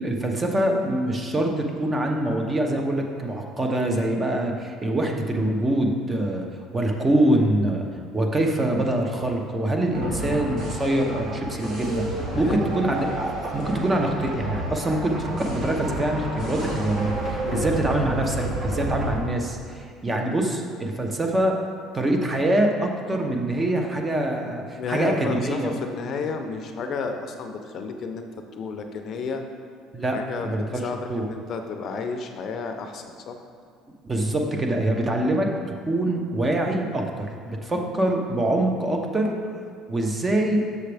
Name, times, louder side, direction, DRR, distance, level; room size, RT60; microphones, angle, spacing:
voice 1, 0.0-6.5 6.7-7.8 8.1-12.1 12.3-21.5 21.9-25.7 29.9-30.2 30.4-30.8 31.1-31.2 34.0-35.5 35.8-39.3 39.9-40.6, right 1 dB, 20° right, 2 dB, 0.8 m, -24 dB
voice 2, 9.9-10.2 12.3-12.7 17.4-17.7 24.8-29.4 30.1-30.6 30.8-33.4 37.7-37.9, left 4 dB, 50° left, 5 dB, 0.6 m, -32 dB
sound 1, 9.9-19.2, right 1 dB, 50° right, 1.8 m, -30 dB
6.8 x 6.5 x 3.4 m, 2.3 s
cardioid pair, 120°, 0 cm